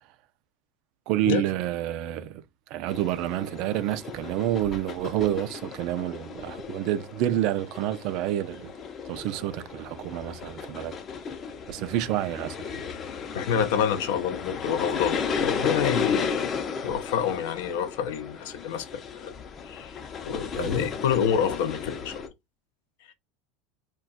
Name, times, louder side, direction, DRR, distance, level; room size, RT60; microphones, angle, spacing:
voice 1, 1.1-2.4 2.7-8.7 9.0-11.0 11.7-12.9 20.5-20.9, right 13 dB, 60° right, 0.4 m, -29 dB
sound 1, 2.9-22.3, left 6 dB, 35° left, 0.6 m, -34 dB
voice 2, 13.3-16.5 16.8-18.9 19.1-19.3 19.7-19.9 20.2-22.1, left 8 dB, 75° left, 0.6 m, -27 dB
2.3 x 2.3 x 3.9 m
supercardioid pair, 115°, 0 cm